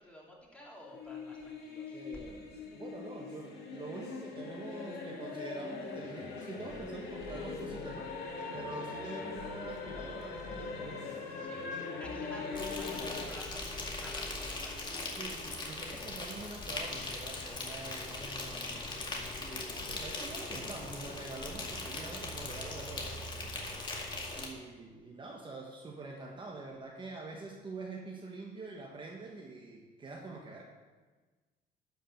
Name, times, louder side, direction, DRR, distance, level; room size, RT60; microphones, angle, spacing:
voice 1, 0.0-2.0 11.4-11.6 12.0-15.4 15.9-16.0 23.5-23.6 24.0-24.4, equal, 5° left, -4 dB, 3.1 m, -51 dB
sound 1, 0.8-13.3, left 4 dB, 75° left, 2.0 m, -41 dB
voice 2, 1.9-2.5 2.7-8.1 8.5-11.9 12.9-13.2 15.2-18.9 19.4-23.7 24.3-30.6, right 3 dB, 30° right, -1 dB, 1.4 m, -46 dB
sound 2, 5.9-21.4, left 4 dB, 50° left, 1.0 m, -52 dB
Insect, 12.6-24.5, left 2 dB, 25° left, 2.0 m, -40 dB
11.5 x 5.5 x 6.7 m, 1.3 s
cardioid pair, 110°, 17 cm